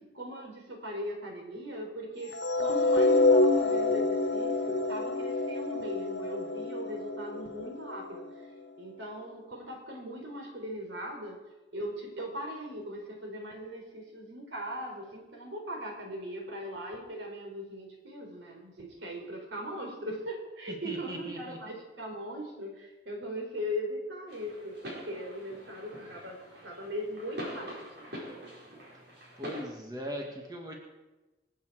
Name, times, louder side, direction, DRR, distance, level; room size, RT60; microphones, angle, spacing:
voice 1, 0.0-8.5 8.8-11.4 11.7-28.1, equal, 90° right, 1 dB, 3.9 m, -39 dB
sound 1, 2.3-8.6, left 2 dB, 75° left, 1.6 m, -27 dB
voice 2, 20.8-21.6 29.4-30.8, equal, 20° right, 1 dB, 1.9 m, -39 dB
sound 2, 24.3-29.6, equal, 65° right, 4.5 m, -44 dB
26.0 x 8.8 x 4.8 m, 1.1 s
head